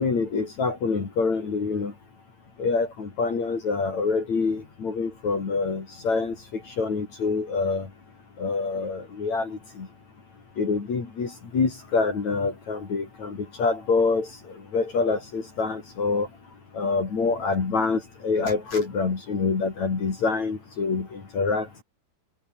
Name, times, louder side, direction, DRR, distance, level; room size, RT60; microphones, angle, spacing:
voice 1, 0.0-1.9 2.6-7.9 8.4-9.9 10.6-14.3 14.7-16.3 16.7-21.8, left 4 dB, 50° left, 5.1 m, -26 dB
omnidirectional pair, 4.4 m